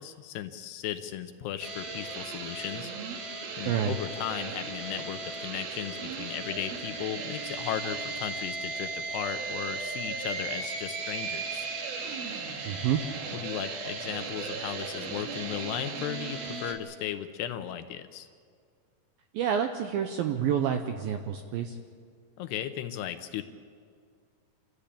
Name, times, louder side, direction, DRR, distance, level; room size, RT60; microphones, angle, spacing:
voice 1, 0.0-2.9 3.6-11.7 13.3-18.3 22.4-23.4, left 11 dB, 75° left, 9 dB, 2.7 m, -36 dB
sound 1, 1.6-16.7, right 4 dB, 60° right, 3.5 m, -36 dB
voice 2, 12.7-13.0 19.3-21.8, right 9 dB, 80° right, 6 dB, 2.2 m, -28 dB
28.0 x 14.0 x 8.6 m, 2.1 s
omnidirectional pair, 5.2 m